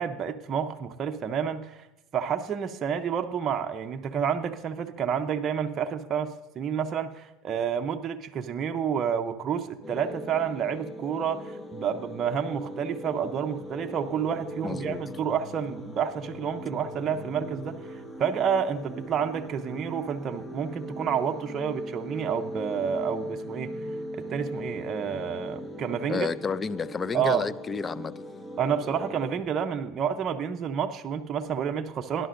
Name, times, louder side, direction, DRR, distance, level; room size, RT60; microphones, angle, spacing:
voice 1, 0.0-1.9 2.1-23.8 24.1-26.3 27.1-27.4 28.6-32.3, right 7 dB, 35° right, 0.6 m, -29 dB
sound 1, 9.8-29.4, equal, 10° left, 1.3 m, -39 dB
voice 2, 14.6-15.0 26.1-28.1, left 5 dB, 25° left, 0.4 m, -31 dB
17.5 x 11.0 x 2.6 m
supercardioid pair, 115°, 0 cm